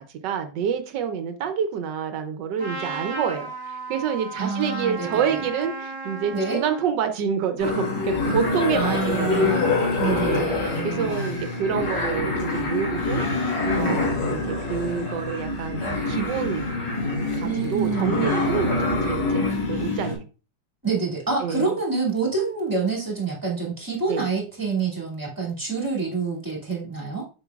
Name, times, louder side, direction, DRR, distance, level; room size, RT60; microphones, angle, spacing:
voice 1, 0.0-9.6 10.2-13.3 13.7-15.8 16.1-16.7 17.4-18.8 19.1-19.4 19.7-20.2 21.4-21.7 24.1-24.2, right 7 dB, 85° right, 7 dB, 1.4 m, -28 dB
Trumpet, 2.6-6.9, right 3 dB, 35° right, 1.9 m, -35 dB
voice 2, 4.4-5.4 6.3-6.6 8.7-11.4 13.7-14.1 17.4-18.4 20.8-27.3, right 4 dB, 10° right, -2 dB, 2.5 m, -27 dB
sound 1, 7.6-20.1, left 3 dB, 80° left, 3.2 m, -25 dB
7.0 x 6.2 x 2.4 m, 0.34 s
omnidirectional pair, 1.8 m